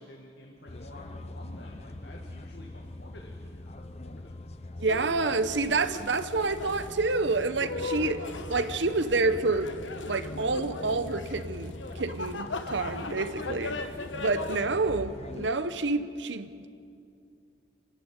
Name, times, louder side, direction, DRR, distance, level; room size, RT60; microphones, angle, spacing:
voice 1, 0.0-4.9 14.0-14.4, left 1 dB, 65° left, 1.8 m, -51 dB
sound 1, 0.7-15.5, left 2 dB, 35° left, 0.7 m, -43 dB
voice 2, 4.8-8.2 8.5-9.7 10.1-13.8 14.2-16.7, right 3 dB, 75° right, 1.0 m, -28 dB
sound 2, 4.9-14.6, left 3 dB, 85° left, 1.3 m, -39 dB
28.5 x 12.0 x 8.3 m
head